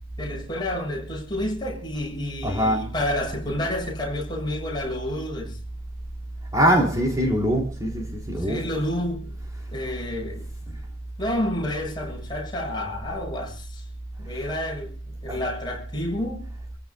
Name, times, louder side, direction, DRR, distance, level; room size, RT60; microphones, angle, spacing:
voice 1, 0.2-5.6 8.4-9.4 9.7-10.5 11.2-13.8 14.2-14.9 15.2-16.5, left 1 dB, 20° left, 7.0 m, -30 dB
voice 2, 2.4-2.8 6.5-8.6 15.3-15.4, equal, 15° right, 3.3 m, -22 dB
28.5 x 16.0 x 2.4 m
head